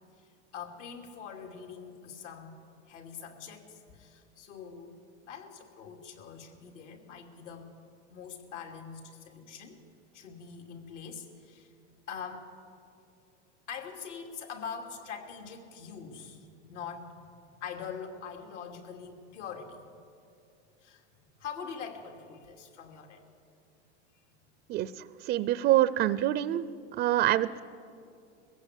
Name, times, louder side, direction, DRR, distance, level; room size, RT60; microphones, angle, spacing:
voice 1, 0.2-2.6 2.9-4.9 5.2-7.7 8.1-9.8 10.1-11.7 12.1-12.5 13.7-17.2 17.6-20.0 20.8-21.0 21.4-23.2, left 6 dB, 80° left, 3 dB, 3.0 m, -43 dB
voice 2, 25.3-26.7 27.0-27.6, right 13 dB, 30° right, 15 dB, 0.4 m, -25 dB
21.5 x 15.5 x 8.2 m, 2.5 s
supercardioid pair, 125°, 35 cm